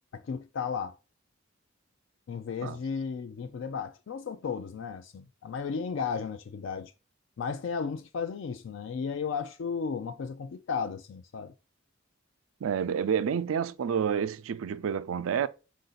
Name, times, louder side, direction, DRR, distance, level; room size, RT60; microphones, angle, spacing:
voice 1, 0.1-1.0 2.3-6.9 7.4-11.5, left 6 dB, 65° left, 0.4 m, -34 dB
voice 2, 12.6-15.5, right 7 dB, 80° right, 0.4 m, -29 dB
4.8 x 2.6 x 3.8 m
head